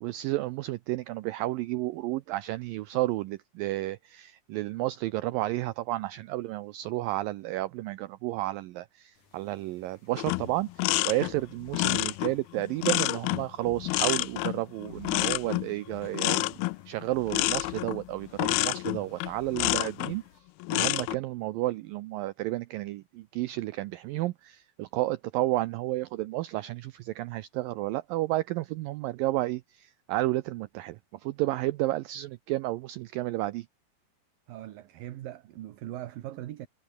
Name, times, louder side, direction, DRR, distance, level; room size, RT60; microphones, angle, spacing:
voice 1, 0.0-20.2 20.7-33.7, right 17 dB, 85° right, 2.0 m, -31 dB
sound 1, 9.1-20.4, left 5 dB, 50° left, 5.7 m, -63 dB
sound 2, 10.2-20.2 20.6-21.2, left 22 dB, 85° left, 2.2 m, -29 dB
voice 2, 34.5-36.7, right 14 dB, 65° right, 2.7 m, -40 dB
omnidirectional pair, 4.8 m